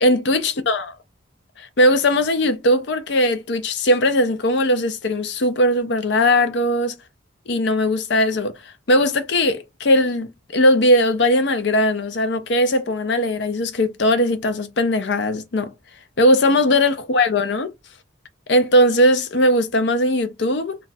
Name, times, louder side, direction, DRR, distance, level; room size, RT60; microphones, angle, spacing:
voice 1, 0.0-0.9 1.6-7.0 7.5-8.5 8.9-15.7 16.2-17.7 18.5-20.8, left 1 dB, 60° left, 0.5 m, -19 dB
2.4 x 2.3 x 4.0 m
head